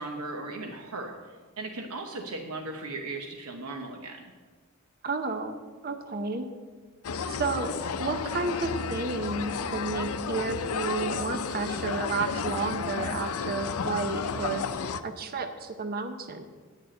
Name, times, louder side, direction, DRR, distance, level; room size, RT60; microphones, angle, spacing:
voice 1, 0.0-4.3, right 2 dB, 90° right, 3 dB, 0.9 m, -37 dB
voice 2, 5.0-5.6 5.8-6.5 7.3-7.7 8.0-14.6 15.0-16.4, right 4 dB, 45° right, 8 dB, 0.7 m, -31 dB
sound 1, 7.0-15.0, left 5 dB, 90° left, 0.5 m, -32 dB
9.8 x 6.6 x 7.7 m, 1.4 s
head